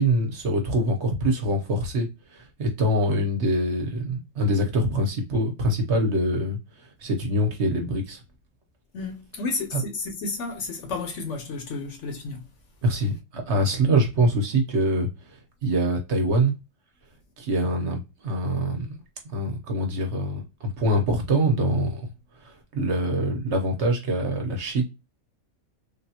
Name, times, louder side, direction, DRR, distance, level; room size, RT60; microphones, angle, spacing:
voice 1, 0.0-6.6 7.0-8.2 9.7-9.8 12.8-15.1 15.6-16.5 17.4-19.0 19.3-22.1 22.4-24.8, right 1 dB, 55° right, 1.0 m, -24 dB
voice 2, 8.9-12.5, left 3 dB, 65° left, 0.9 m, -32 dB
3.5 x 2.2 x 2.8 m
omnidirectional pair, 1.5 m